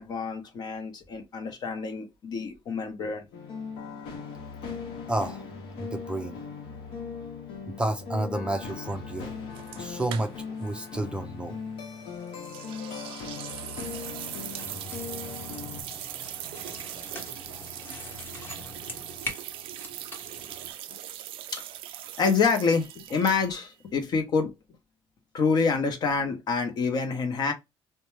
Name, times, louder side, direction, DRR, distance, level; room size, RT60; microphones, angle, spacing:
voice 1, 0.0-3.3 21.5-21.6 22.2-24.5 25.3-27.5, left 5 dB, 50° left, 0.8 m, -27 dB
sound 1, 3.3-15.8, left 5 dB, 80° left, 0.9 m, -39 dB
voice 2, 5.1-5.4 5.8-6.4 7.7-9.3 9.7-11.6, right 1 dB, 10° right, 0.4 m, -31 dB
sound 2, 9.5-10.7 10.9-11.0 12.4-23.7, right 12 dB, 90° right, 0.3 m, -40 dB
sound 3, 14.5-20.7, left 1 dB, 25° left, 0.9 m, -42 dB
2.6 x 2.2 x 3.1 m
cardioid pair, 130°, 9 cm